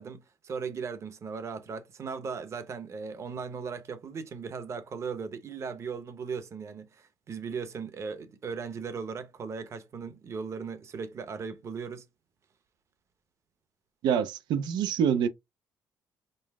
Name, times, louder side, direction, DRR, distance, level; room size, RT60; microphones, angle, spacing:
voice 1, 0.0-12.0, right 5 dB, 40° right, 0.8 m, -37 dB
voice 2, 14.0-15.3, right 8 dB, 75° right, 0.5 m, -26 dB
5.4 x 2.0 x 3.5 m
cardioid pair, 125°, 8 cm